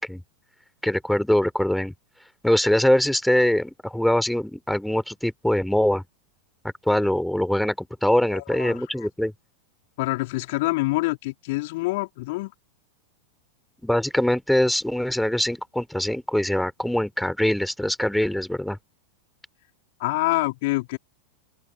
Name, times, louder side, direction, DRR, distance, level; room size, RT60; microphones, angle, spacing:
voice 1, 0.8-1.9 2.4-6.0 6.6-9.3 13.8-18.8, left 1 dB, ahead, 3.5 m, -23 dB
voice 2, 8.3-9.1 10.0-12.5 20.0-21.0, left 22 dB, 50° left, 4.0 m, -26 dB
open air
figure-of-eight pair, 90°, 0 cm